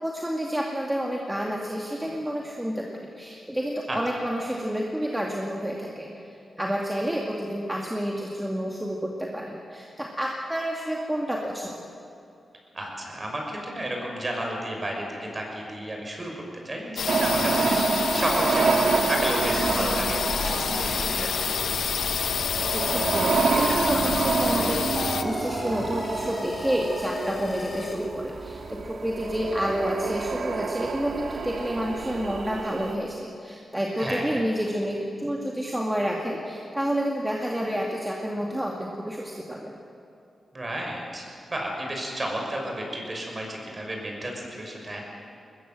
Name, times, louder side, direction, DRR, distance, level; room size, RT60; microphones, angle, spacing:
voice 1, 0.0-6.1 6.6-11.9 22.7-39.8, equal, 10° right, -1 dB, 2.3 m, -29 dB
voice 2, 12.7-17.8 18.1-21.5 34.0-34.4 40.5-45.0, right 1 dB, 30° right, 0 dB, 6.5 m, -32 dB
sound 1, 17.0-25.2, left 7 dB, 80° left, 0.9 m, -28 dB
sound 2, 17.1-32.9, right 4 dB, 65° right, 1.6 m, -28 dB
sound 3, 17.2-18.3 18.9-19.0 19.5-28.0, left 3 dB, 45° left, 2.5 m, -37 dB
21.5 x 21.0 x 7.7 m, 2.7 s
cardioid pair, 90°, 0 cm